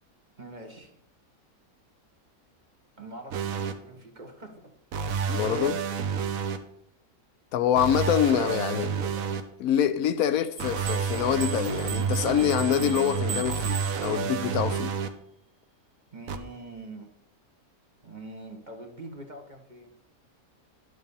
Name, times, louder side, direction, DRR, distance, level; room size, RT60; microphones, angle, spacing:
voice 1, 0.4-1.0 3.0-4.7 8.0-9.3 16.1-17.1 18.0-19.9, right 2 dB, 35° right, 1.2 m, -44 dB
sound 1, 3.3-3.7 4.9-6.6 7.8-9.4 10.6-15.1 16.3-16.4, right 6 dB, 70° right, 1.2 m, -30 dB
voice 2, 5.3-5.8 7.5-8.9 9.6-14.9, left 9 dB, 75° left, 1.1 m, -25 dB
sound 2, 10.6-14.5, right 7 dB, 90° right, 1.4 m, -39 dB
11.0 x 6.6 x 5.3 m
omnidirectional pair, 1.5 m